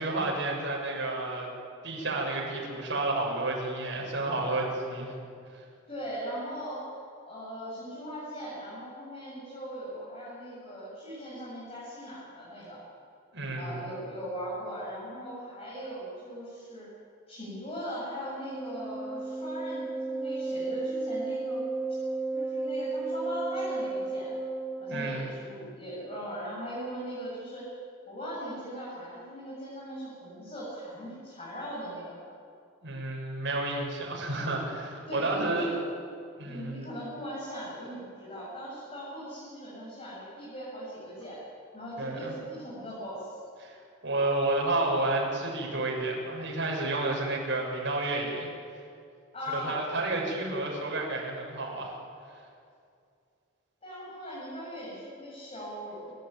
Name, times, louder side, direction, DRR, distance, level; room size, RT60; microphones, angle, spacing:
voice 1, 0.0-1.5 1.8-5.2 5.5-5.6 13.3-13.8 24.9-25.4 32.8-35.7 36.4-36.9 42.0-42.3 43.6-43.7 44.0-48.5 49.5-51.9, right 2 dB, 60° right, -2 dB, 7.4 m, -31 dB
voice 2, 5.9-6.9 7.3-12.8 13.5-16.9 17.3-21.6 22.3-24.3 24.8-27.6 28.0-32.2 35.1-35.7 36.5-41.4 41.7-43.4 49.3-49.9 53.8-56.1, equal, 30° left, -8 dB, 7.9 m, -39 dB
Wind instrument woodwind instrument, 18.3-25.4, right 3 dB, ahead, 3.8 m, -33 dB
29.5 x 14.0 x 9.3 m, 2.4 s
head